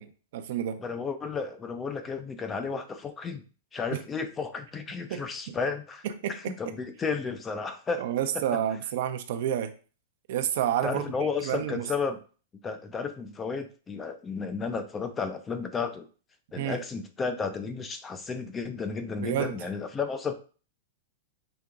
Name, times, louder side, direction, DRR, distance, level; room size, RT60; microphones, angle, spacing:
voice 1, 0.0-0.8 3.9-4.0 5.1-5.6 6.2-6.5 8.0-9.7 10.3-11.1 11.4-11.8 16.6-16.8 19.2-19.6, right 10 dB, 65° right, 0.5 m, -29 dB
voice 2, 0.8-3.4 3.7-6.0 6.3-8.1 8.3-8.4 10.8-12.2 12.6-16.1 16.5-20.3, left 5 dB, 20° left, 0.4 m, -33 dB
5.1 x 2.8 x 2.3 m
hypercardioid pair, 135°, 0 cm